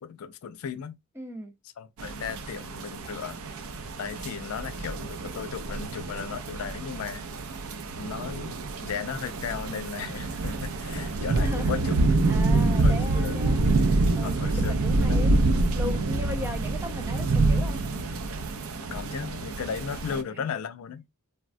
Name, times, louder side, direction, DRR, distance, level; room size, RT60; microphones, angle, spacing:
voice 1, 0.0-1.0 1.8-3.4 4.0-7.2 7.9-12.1 12.8-13.4 14.2-14.8 15.1-15.2 18.9-21.1, left 7 dB, 80° left, 0.4 m, -36 dB
voice 2, 1.2-1.5 11.4-12.0 12.3-15.4 15.7-17.8 20.1-20.4, left 1 dB, 10° right, 0.4 m, -37 dB
sound 1, 2.0-20.2, right 2 dB, 75° right, 0.4 m, -27 dB
3.3 x 2.1 x 2.4 m
head